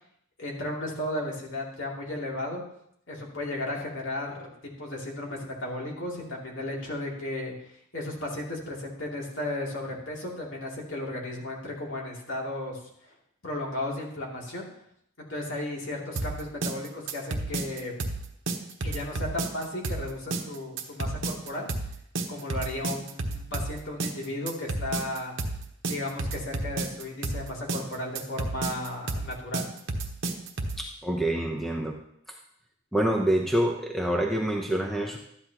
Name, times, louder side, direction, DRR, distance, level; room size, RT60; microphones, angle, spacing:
voice 1, 0.4-2.6 3.1-4.5 4.8-13.1 13.4-14.7 15.3-17.9 18.8-21.7 22.3-25.3 25.9-29.7, left 1 dB, 60° left, -2 dB, 2.8 m, -34 dB
sound 1, 16.2-30.9, right 2 dB, 60° right, 1.1 m, -31 dB
voice 2, 30.8-32.0 32.3-32.4 32.9-35.2, right 1 dB, ahead, 1 dB, 0.8 m, -26 dB
12.5 x 10.5 x 3.0 m, 0.72 s
head